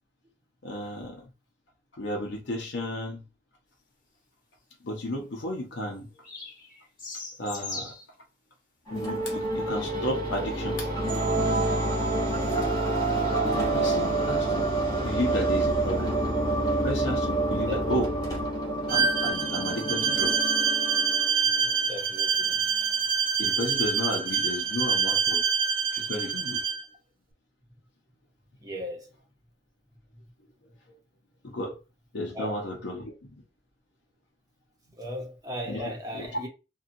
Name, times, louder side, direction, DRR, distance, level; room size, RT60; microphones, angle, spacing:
voice 1, 0.6-1.3 1.9-3.2 4.8-6.1 7.4-7.9 8.9-10.9 13.1-14.7 15.0-16.2 16.8-18.1 18.9-20.5 23.4-25.4 25.9-26.6 31.4-31.8 32.1-33.3 35.7-36.3, left 1 dB, 85° left, 0.7 m, -33 dB
sound 1, 5.9-8.1 9.3-9.4 10.5-10.6 13.5-13.6 18.4-18.5 18.9-19.3, left 3 dB, 50° left, 1.0 m, -40 dB
sound 2, 8.9-21.8, right 2 dB, 20° left, 0.9 m, -27 dB
Bowed string instrument, 18.9-26.8, right 6 dB, 50° right, 0.4 m, -26 dB
voice 2, 21.5-22.6 28.6-29.1 32.3-32.5 34.8-36.5, equal, 20° right, 0.8 m, -37 dB
2.7 x 2.3 x 2.6 m
head